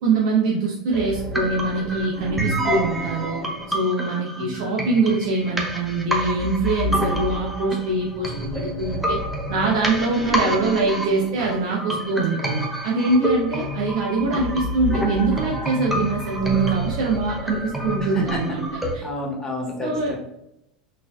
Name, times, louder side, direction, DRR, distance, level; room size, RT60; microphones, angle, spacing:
voice 1, 0.0-3.4 3.7-9.2 9.5-18.6 18.9-19.0 19.8-20.1, right 3 dB, 65° right, -3 dB, 0.7 m, -23 dB
sound 1, 0.9-18.9, equal, 5° right, 0.7 m, -28 dB
voice 2, 8.3-8.9 18.0-18.4 18.7-20.2, left 1 dB, 15° left, -1 dB, 1.2 m, -30 dB
4.1 x 2.7 x 2.3 m, 0.81 s
hypercardioid pair, 85°, 4 cm